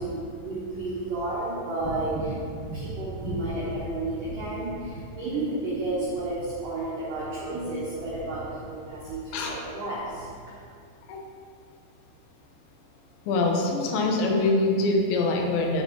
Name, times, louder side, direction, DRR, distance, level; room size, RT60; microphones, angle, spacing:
voice 1, 0.0-10.3, right 2 dB, 75° right, -9 dB, 1.9 m, -31 dB
voice 2, 13.3-15.8, left 2 dB, 85° left, 0 dB, 2.2 m, -24 dB
7.3 x 5.9 x 2.8 m, 2.3 s
omnidirectional pair, 5.4 m